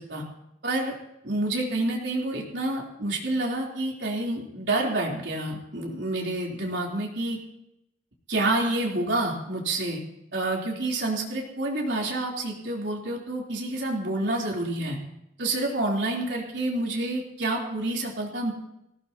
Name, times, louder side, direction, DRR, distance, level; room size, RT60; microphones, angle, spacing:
voice 1, 0.6-0.9 1.2-7.4 8.3-10.0 10.3-15.0 15.4-18.5, right 2 dB, 80° right, -2 dB, 3.4 m, -28 dB
19.5 x 16.5 x 2.9 m, 0.83 s
head